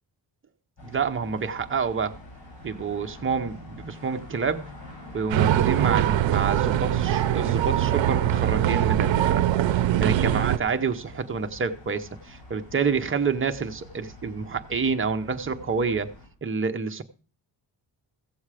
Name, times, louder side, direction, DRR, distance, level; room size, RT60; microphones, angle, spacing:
sound 1, 0.8-16.3, left 1 dB, 65° left, 6.9 m, -45 dB
voice 1, 0.8-2.2 2.6-4.6 5.1-16.1 16.4-17.0, right 5 dB, 30° right, 0.8 m, -28 dB
sound 2, 5.3-10.6, right 12 dB, 85° right, 0.6 m, -22 dB
15.0 x 7.1 x 4.9 m
wide cardioid pair, 130°, 44 cm